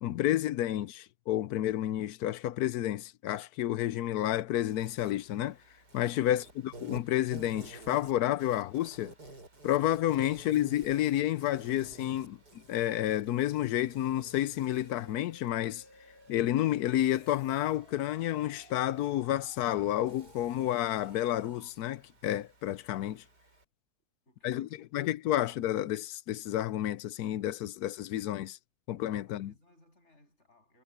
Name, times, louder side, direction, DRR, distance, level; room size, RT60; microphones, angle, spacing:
voice 1, 0.0-5.6 5.9-9.1 9.6-12.4 12.7-15.8 16.3-23.2 24.4-28.6 28.9-29.5, left 13 dB, 75° left, 1.1 m, -30 dB
Insect, 4.7-23.6, right 2 dB, 80° right, 8.0 m, -53 dB
sound 1, 13.7-21.7, right 2 dB, 15° right, 2.0 m, -58 dB
voice 2, 24.3-25.4 29.2-30.8, left 1 dB, 45° left, 8.2 m, -63 dB
omnidirectional pair, 1.7 m